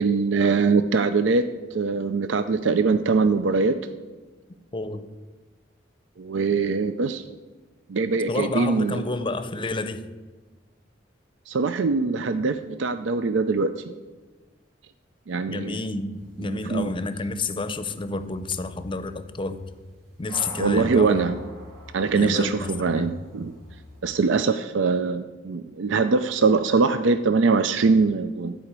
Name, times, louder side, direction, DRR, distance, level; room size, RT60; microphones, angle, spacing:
voice 1, 0.0-1.4 1.7-3.8 6.2-7.2 7.9-9.0 11.5-13.8 15.3-15.8 16.4-16.9 20.6-21.4 21.9-23.5 24.0-28.5, right 4 dB, 80° right, 11 dB, 0.5 m, -22 dB
voice 2, 4.7-5.0 8.3-10.1 15.5-16.1 16.4-19.6 20.2-21.2 22.1-23.2, left 3 dB, 25° left, 12 dB, 0.6 m, -29 dB
sound 1, 16.1-24.0, equal, 60° right, 4.1 m, -46 dB
12.0 x 5.1 x 8.0 m, 1.3 s
head